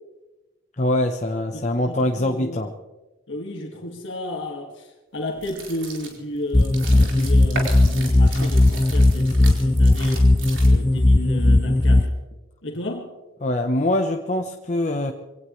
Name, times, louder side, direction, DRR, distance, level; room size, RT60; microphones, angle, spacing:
voice 1, 0.8-2.7 13.4-15.1, left 1 dB, 35° left, 0.9 m, -23 dB
voice 2, 1.5-2.6 3.3-10.3 10.6-12.1 12.6-13.1, left 1 dB, 65° left, 2.1 m, -33 dB
sound 1, 5.3-11.0, right 3 dB, 65° right, 4.5 m, -36 dB
sound 2, 6.5-12.0, left 2 dB, 15° left, 0.5 m, -17 dB
24.0 x 18.0 x 3.2 m
head